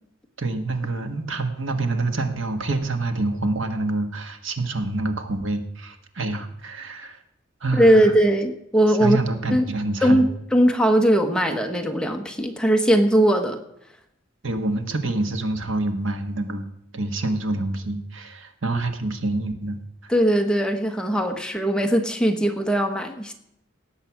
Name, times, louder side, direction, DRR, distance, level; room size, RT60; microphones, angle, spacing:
voice 1, 0.4-7.2 7.6-8.0 9.0-10.3 14.4-16.7 16.9-19.8, right 2 dB, 80° right, 7 dB, 1.5 m, -27 dB
voice 2, 7.7-9.2 9.5-9.6 10.0-10.3 10.5-13.6 20.1-23.3, right 1 dB, 5° left, 4 dB, 1.2 m, -19 dB
18.0 x 7.8 x 6.0 m, 0.77 s
head